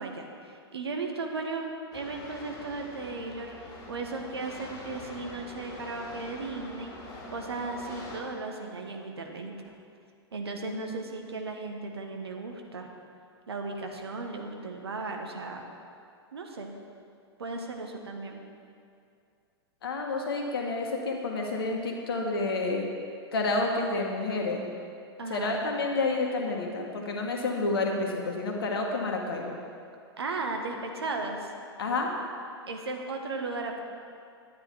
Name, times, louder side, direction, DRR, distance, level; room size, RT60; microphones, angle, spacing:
voice 1, 0.0-6.9 7.3-9.7 10.3-12.9 13.5-15.6 16.3-16.7 17.4-18.4 25.2-25.5 30.2-31.5 32.7-33.8, right 3 dB, 65° right, 3 dB, 1.4 m, -36 dB
sound 1, 1.9-8.2, left 2 dB, 25° left, 2.5 m, -44 dB
voice 2, 19.8-22.9 23.3-24.7 25.3-29.6 31.8-32.1, left 3 dB, 60° left, 1 dB, 1.7 m, -29 dB
11.0 x 9.4 x 4.6 m, 2.4 s
figure-of-eight pair, 100°, 14 cm